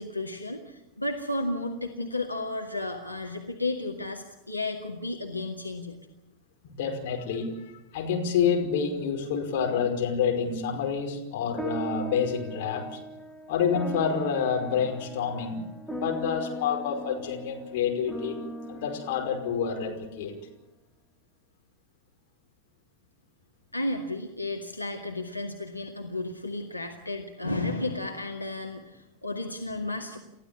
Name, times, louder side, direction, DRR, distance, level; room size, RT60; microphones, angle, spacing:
voice 1, 0.0-6.0 23.7-30.2, left 2 dB, 85° left, 1 dB, 2.0 m, -33 dB
voice 2, 6.6-13.0 13.5-18.4 18.7-20.4, left 7 dB, 50° left, 2 dB, 5.2 m, -28 dB
sound 1, 11.6-20.3, right 2 dB, 10° left, 1.1 m, -39 dB
30.0 x 15.0 x 8.6 m, 0.95 s
figure-of-eight pair, 90°, 0 cm